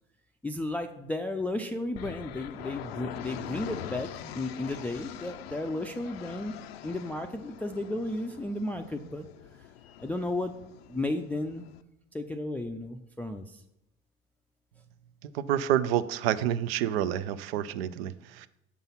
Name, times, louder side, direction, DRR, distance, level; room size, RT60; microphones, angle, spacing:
voice 1, 0.4-6.5 6.8-9.3 10.0-10.6 10.9-11.7 12.1-13.6, left 2 dB, 5° left, 5 dB, 0.4 m, -33 dB
sound 1, 1.9-11.8, left 11 dB, 80° left, 0.5 m, -43 dB
voice 2, 15.2-18.5, right 11 dB, 80° right, 14 dB, 0.5 m, -28 dB
7.2 x 3.9 x 5.6 m, 0.83 s
hypercardioid pair, 75°, 30 cm